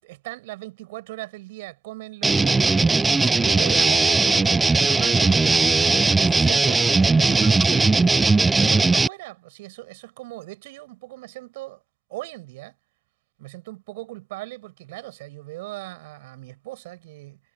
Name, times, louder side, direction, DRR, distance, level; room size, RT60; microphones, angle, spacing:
voice 1, 0.0-8.0 8.6-11.8 12.1-12.7 13.4-17.4, right 19 dB, 50° right, 8.0 m, -39 dB
sound 1, 2.2-9.1, right 3 dB, 10° right, 0.4 m, -18 dB
figure-of-eight pair, 90°, 0 cm